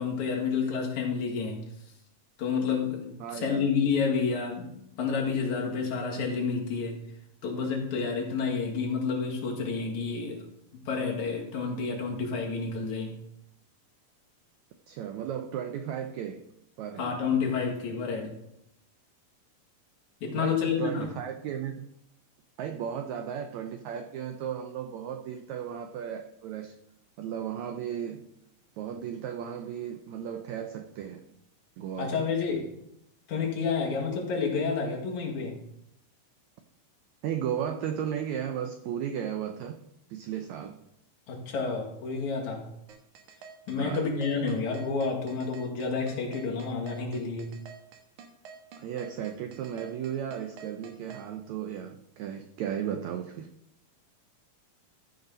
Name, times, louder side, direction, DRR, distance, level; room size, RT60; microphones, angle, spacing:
voice 1, 0.0-1.7 2.4-7.0 7.4-10.4 10.7-13.2 17.0-18.3 20.2-21.1 32.0-32.7 33.3-35.6 41.3-42.7 43.7-47.6, left 5 dB, 60° left, -1 dB, 2.9 m, -30 dB
voice 2, 3.2-3.6 14.9-16.4 16.8-17.1 20.4-21.8 22.6-26.7 27.2-28.2 28.8-31.2 31.8-32.3 37.2-39.8 40.1-40.8 43.8-44.1 48.8-53.5, right 9 dB, 80° right, 6 dB, 1.6 m, -35 dB
sound 1, 42.9-51.2, right 6 dB, 65° right, 2.4 m, -47 dB
13.5 x 5.3 x 5.3 m, 0.78 s
omnidirectional pair, 4.0 m